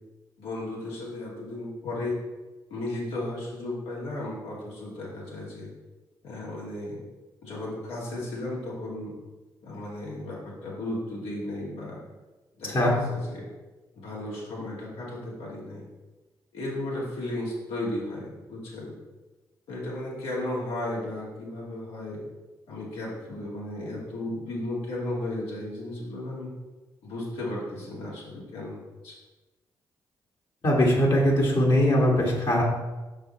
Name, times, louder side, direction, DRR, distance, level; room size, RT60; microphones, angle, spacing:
voice 1, 0.4-2.2 2.7-5.7 6.2-7.0 7.4-9.1 9.6-12.0 12.6-13.5 14.0-15.8 16.5-18.9 19.7-22.2 22.7-26.5 27.0-29.1, left 1 dB, 75° left, -5 dB, 2.2 m, -34 dB
voice 2, 30.6-32.6, equal, 50° left, -4 dB, 1.9 m, -21 dB
6.3 x 5.5 x 4.2 m, 1.2 s
hypercardioid pair, 40°, 10 cm